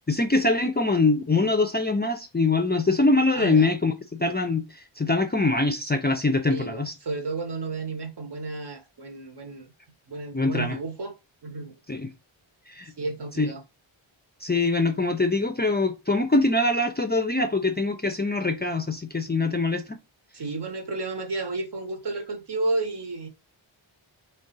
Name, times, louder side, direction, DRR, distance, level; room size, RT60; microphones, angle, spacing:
voice 1, 0.1-4.6 5.0-6.9 10.3-10.8 11.9-12.1 12.7-12.9 13.4-13.5 14.4-20.0, left 2 dB, 20° left, 0.4 m, -23 dB
voice 2, 3.3-3.7 6.5-9.7 10.1-11.1 11.4-11.8 13.0-13.6 20.3-23.3, right 3 dB, 55° right, 1.0 m, -32 dB
3.6 x 2.2 x 3.8 m
wide cardioid pair, 75°, 48 cm